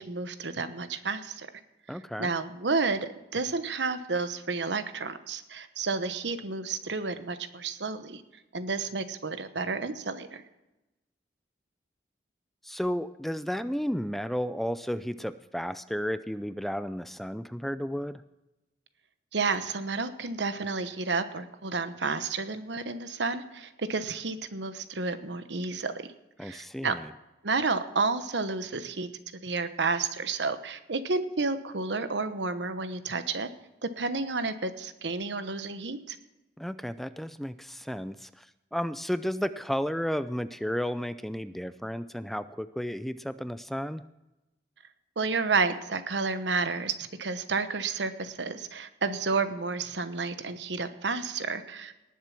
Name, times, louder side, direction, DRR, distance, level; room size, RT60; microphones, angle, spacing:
voice 1, 0.0-1.5 1.9-8.2 8.5-10.4 19.3-26.1 26.4-27.0 27.4-29.1 29.4-33.5 33.8-36.2 45.2-51.9, right 4 dB, 85° right, 11 dB, 1.0 m, -31 dB
voice 2, 1.9-2.3 12.6-18.2 26.4-27.1 36.6-38.5 38.7-44.0, equal, ahead, 13 dB, 0.3 m, -33 dB
19.0 x 7.5 x 5.9 m, 0.99 s
head